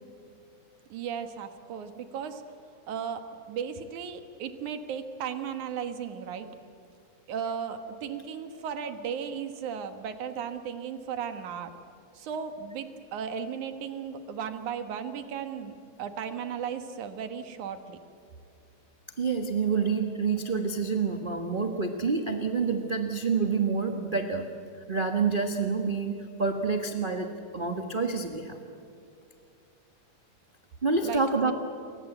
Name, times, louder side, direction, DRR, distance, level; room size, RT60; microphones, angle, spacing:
voice 1, 0.9-2.4 2.9-3.2 3.5-6.5 7.3-11.7 12.1-15.7 16.0-18.0 31.0-31.5, right 7 dB, 80° right, 8 dB, 3.0 m, -35 dB
voice 2, 19.2-24.4 24.9-28.6 30.8-31.5, right 4 dB, 35° right, 4 dB, 0.8 m, -28 dB
29.5 x 24.0 x 8.1 m, 2.5 s
omnidirectional pair, 3.4 m